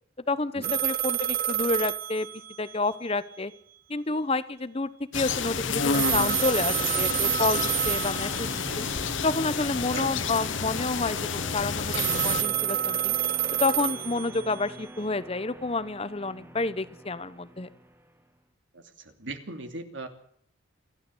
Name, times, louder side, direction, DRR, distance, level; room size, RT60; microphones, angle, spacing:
voice 1, 0.3-2.3 2.6-3.5 3.9-8.9 9.2-13.2 13.6-17.7, left 3 dB, 30° left, 14 dB, 1.0 m, -29 dB
sound 1, 0.6-2.9 5.9-8.8 11.9-14.8, right 10 dB, 45° right, 0.8 m, -28 dB
sound 2, 5.1-12.4, left 6 dB, 75° left, 1.2 m, -30 dB
sound 3, 5.3-18.3, right 1 dB, 10° right, 1.4 m, -43 dB
voice 2, 18.7-20.1, right 2 dB, 70° right, 7 dB, 2.9 m, -38 dB
28.0 x 12.0 x 8.0 m, 0.62 s
head